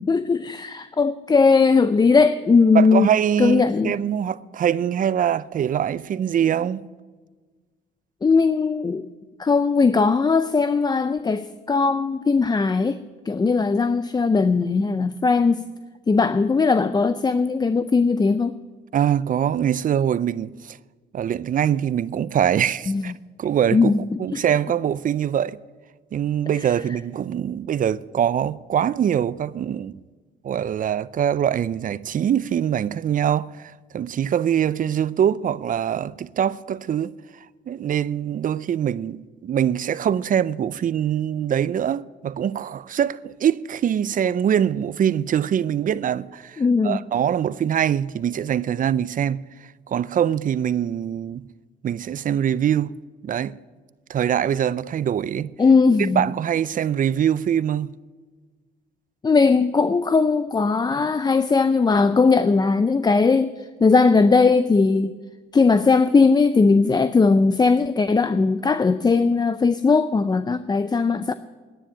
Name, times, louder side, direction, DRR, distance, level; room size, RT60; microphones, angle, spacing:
voice 1, 0.0-3.1 3.4-4.0 8.2-9.0 9.4-13.0 13.3-15.6 16.1-18.6 22.9-23.1 23.7-24.4 46.6-47.0 55.6-56.2 59.2-65.1 65.5-71.3, left 4 dB, 20° left, 0.5 m, -19 dB
voice 2, 2.7-6.8 18.9-20.8 21.1-23.1 23.4-25.6 26.1-30.0 30.4-37.1 37.7-49.4 49.9-51.5 51.8-53.0 53.2-53.6 54.1-55.5 56.2-57.9, right 9 dB, 45° right, 0.4 m, -23 dB
10.0 x 10.0 x 9.7 m
cardioid pair, 90°, 20 cm